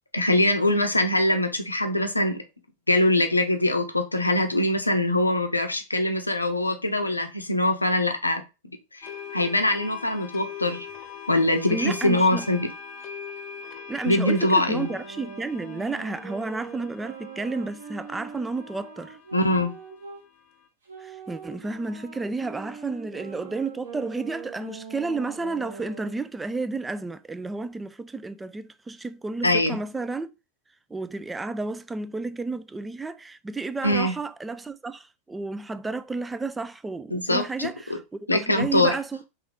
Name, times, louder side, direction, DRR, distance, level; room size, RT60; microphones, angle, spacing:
voice 1, 0.1-2.4 2.9-8.4 8.9-10.9 11.3-12.7 14.0-14.9 19.3-19.7 29.4-29.8 33.8-34.1 37.1-37.7 38.3-38.9, left 1 dB, 85° left, 0.6 m, -23 dB
sound 1, 9.0-20.6, left 5 dB, 35° left, 0.6 m, -42 dB
voice 2, 11.7-12.5 13.9-19.2 21.0-30.3 30.9-39.3, right 3 dB, 10° right, 0.3 m, -32 dB
sound 2, 14.8-20.2 20.9-26.2, right 6 dB, 65° right, 1.3 m, -42 dB
3.6 x 3.1 x 3.2 m
figure-of-eight pair, 90°, 0 cm